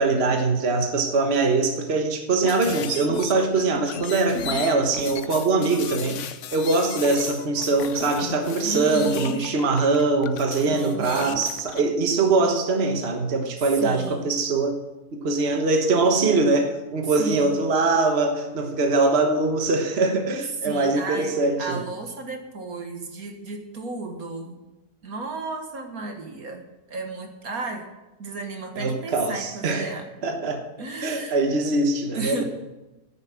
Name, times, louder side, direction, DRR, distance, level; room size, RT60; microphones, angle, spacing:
voice 1, 0.0-6.2 6.5-14.8 15.1-21.8 28.8-30.6 31.0-32.4, right 3 dB, 40° right, 4 dB, 1.5 m, -22 dB
sound 1, 2.4-11.8, left 9 dB, 60° left, 0.9 m, -35 dB
voice 2, 8.6-9.4 10.7-11.4 13.6-14.4 17.2-17.6 20.6-24.6 25.0-27.8 28.2-30.1 30.8-31.4 32.1-32.4, right 3 dB, 65° right, 4 dB, 1.9 m, -34 dB
10.5 x 10.0 x 7.4 m, 1.0 s
omnidirectional pair, 1.7 m